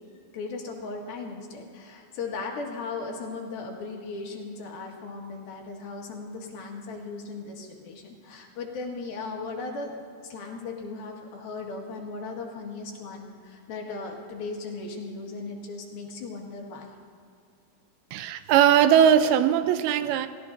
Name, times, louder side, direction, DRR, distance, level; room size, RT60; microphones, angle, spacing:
voice 1, 0.3-9.9 10.2-16.9, left 3 dB, 75° left, 3.6 m, -37 dB
voice 2, 18.1-20.3, right 9 dB, 90° right, 2.6 m, -20 dB
30.0 x 16.5 x 2.7 m
omnidirectional pair, 4.3 m